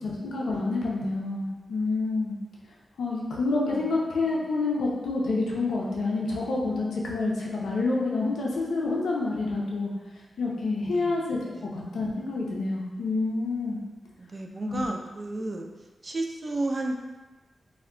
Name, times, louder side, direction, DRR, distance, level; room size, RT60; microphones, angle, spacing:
voice 1, 0.0-2.4 3.0-9.9 10.4-11.4 11.7-13.8 14.7-14.9 15.4-15.5, left 3 dB, 90° left, -4 dB, 0.4 m, -28 dB
voice 2, 10.8-11.2 11.5-11.7 14.2-15.7 16.0-16.9, right 2 dB, 40° right, 2 dB, 0.3 m, -32 dB
2.2 x 2.1 x 3.6 m, 1.2 s
cardioid pair, 70°, 0 cm